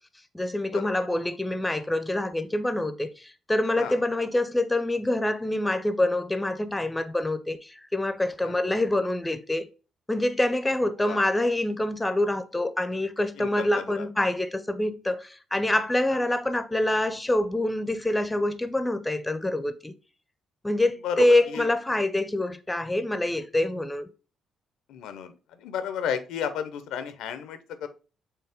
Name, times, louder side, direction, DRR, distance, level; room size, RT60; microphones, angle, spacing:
voice 1, 0.3-9.7 10.1-19.9 20.6-24.1, left 1 dB, 10° left, 0.4 m, -26 dB
voice 2, 13.4-14.1 16.1-16.2 21.0-21.7 24.9-27.9, left 8 dB, 90° left, 0.5 m, -33 dB
4.6 x 3.2 x 3.4 m
cardioid pair, 90°, 0 cm